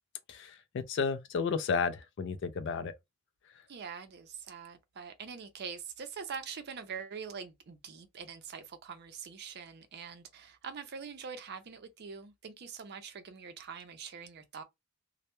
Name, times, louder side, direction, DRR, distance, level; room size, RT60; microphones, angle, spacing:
voice 1, 0.3-2.9, left 5 dB, 55° left, 0.3 m, -32 dB
voice 2, 3.7-14.6, right 6 dB, 50° right, 0.4 m, -44 dB
2.1 x 2.0 x 2.9 m
head